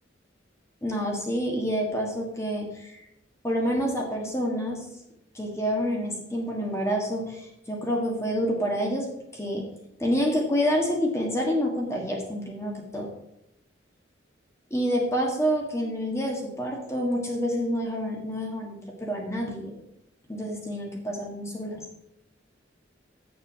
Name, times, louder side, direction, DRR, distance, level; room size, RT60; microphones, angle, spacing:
voice 1, 0.8-3.0 3.4-4.8 5.3-9.1 9.3-9.7 10.0-13.1 14.7-19.7 20.3-21.8, equal, 15° left, -1 dB, 1.6 m, -28 dB
8.1 x 6.8 x 5.7 m, 0.83 s
head